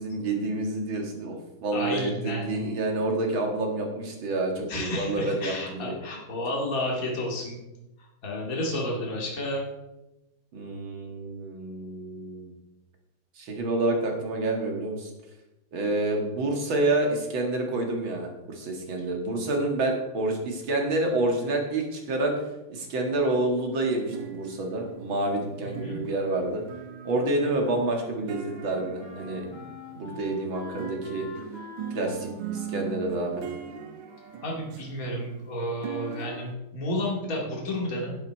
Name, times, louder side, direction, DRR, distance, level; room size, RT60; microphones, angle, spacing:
voice 1, 0.0-5.9 10.5-12.5 13.4-15.1 15.7-22.3 22.7-26.6 27.0-29.6 29.9-31.3 31.9-33.4, right 2 dB, 65° right, 1 dB, 2.7 m, -28 dB
voice 2, 1.7-2.7 4.7-7.6 8.2-9.7 25.6-26.0 34.4-38.2, left 1 dB, 40° left, -2 dB, 2.7 m, -31 dB
sound 1, 23.9-30.3 30.8-36.5, right 9 dB, 90° right, 1.8 m, -40 dB
Wind instrument woodwind instrument, 27.9-35.2, left 4 dB, 65° left, 2.7 m, -47 dB
10.5 x 9.3 x 4.6 m, 0.96 s
omnidirectional pair, 2.4 m